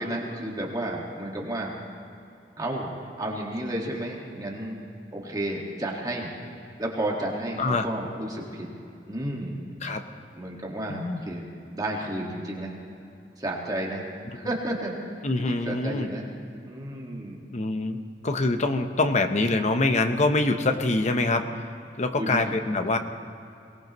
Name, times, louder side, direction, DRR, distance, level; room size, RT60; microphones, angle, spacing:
voice 1, 0.0-1.7 2.6-2.9 3.2-6.3 6.8-8.7 9.1-9.6 10.3-11.4 11.7-12.8 13.4-14.1 14.3-14.9 15.4-16.3 16.6-17.4 22.1-22.5, right 1 dB, 20° right, -2 dB, 1.9 m, -32 dB
voice 2, 10.9-11.2 15.2-16.1 17.5-21.5 22.0-23.0, left 2 dB, 40° left, 7 dB, 0.9 m, -25 dB
23.0 x 19.0 x 3.1 m, 2.6 s
head